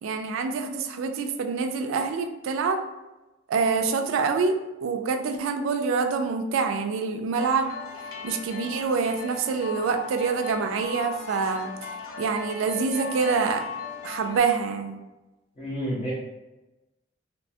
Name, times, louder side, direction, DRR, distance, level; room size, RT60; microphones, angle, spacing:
voice 1, 0.0-2.8 3.5-7.7 8.2-11.7 12.2-13.6 14.0-15.0, right 5 dB, 75° right, 6 dB, 0.3 m, -26 dB
sound 1, 7.3-14.4, left 5 dB, 85° left, 0.3 m, -38 dB
voice 2, 15.6-16.1, equal, 30° left, -9 dB, 0.6 m, -30 dB
2.9 x 2.1 x 2.6 m, 1.1 s
head